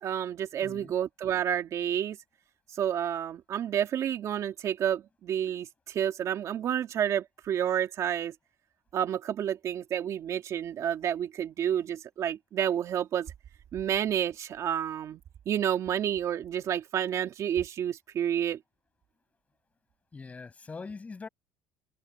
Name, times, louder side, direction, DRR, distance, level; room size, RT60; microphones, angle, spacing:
voice 1, 0.0-2.2 2.7-8.3 8.9-13.3 13.7-15.2 15.5-18.6, right 9 dB, 40° right, 2.3 m, -30 dB
voice 2, 0.6-0.9 20.1-21.3, left 4 dB, 15° left, 7.0 m, -42 dB
cardioid pair, 135°, 8 cm